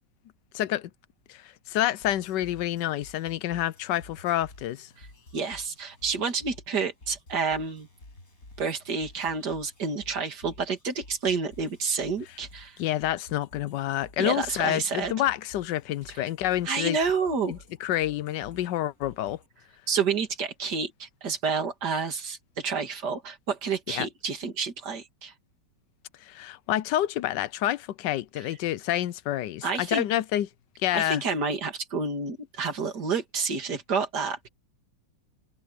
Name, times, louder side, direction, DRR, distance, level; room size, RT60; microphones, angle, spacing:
voice 1, 0.5-0.9 1.3-4.9 12.8-17.0 17.5-19.4 23.9-24.1 26.2-30.5 30.8-31.2, left 13 dB, 75° left, 1.3 m, -28 dB
sound 1, 1.7-19.5, left 2 dB, 50° left, 7.7 m, -52 dB
voice 2, 5.3-7.9 8.6-12.8 14.2-15.1 16.2-16.3 16.6-17.5 19.9-25.3 29.6-30.0 30.9-34.5, right 5 dB, 65° right, 3.0 m, -29 dB
omnidirectional pair, 2.0 m